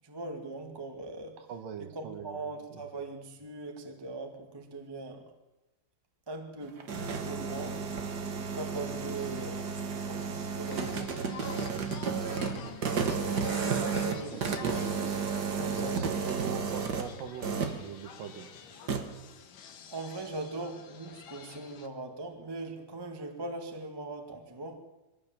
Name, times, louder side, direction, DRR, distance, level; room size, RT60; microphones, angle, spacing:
voice 1, 0.0-1.4 1.8-5.3 6.3-7.8 8.5-9.6 10.0-11.8 13.5-15.1 15.4-16.1 19.9-24.8, right 2 dB, 15° right, 0.9 m, -41 dB
voice 2, 1.5-2.8 12.2-12.7 14.0-15.2 15.5-18.5, right 7 dB, 70° right, 2.9 m, -42 dB
sound 1, 6.6-17.1 17.4-17.8 18.9-19.0, right 5 dB, 90° right, 0.9 m, -32 dB
sound 2, 10.7-21.9, left 7 dB, 65° left, 2.8 m, -48 dB
22.0 x 16.0 x 7.4 m
omnidirectional pair, 4.2 m